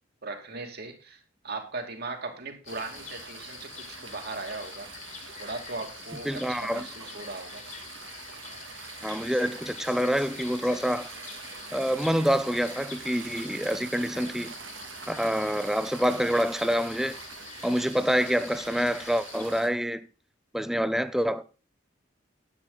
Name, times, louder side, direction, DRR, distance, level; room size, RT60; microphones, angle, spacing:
voice 1, 0.2-4.9 5.4-7.6, right 3 dB, 55° right, 2.5 m, -38 dB
sound 1, 2.6-19.6, left 6 dB, 40° left, 2.2 m, -45 dB
sound 2, 2.7-19.7, right 6 dB, 85° right, 1.9 m, -45 dB
voice 2, 6.2-6.9 9.0-11.1 11.7-14.5 15.1-17.2 17.6-20.0 20.5-21.4, equal, ahead, 0.7 m, -27 dB
10.5 x 9.3 x 3.9 m
head